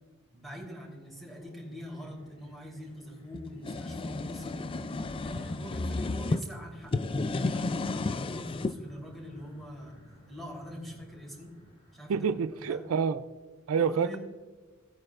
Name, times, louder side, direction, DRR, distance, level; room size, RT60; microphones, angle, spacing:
voice 1, 0.3-4.7 5.2-10.0 10.3-11.5 11.9-12.2 12.6-12.8 13.8-14.2, equal, ahead, 3.5 m, -44 dB
sound 1, 0.7-13.1, equal, 55° left, 3.3 m, -56 dB
sound 2, 3.3-6.4 6.8-8.8, left 3 dB, 25° left, 0.3 m, -32 dB
voice 2, 12.1-13.2 13.7-14.2, right 6 dB, 90° right, 0.4 m, -28 dB
17.5 x 8.9 x 2.4 m
head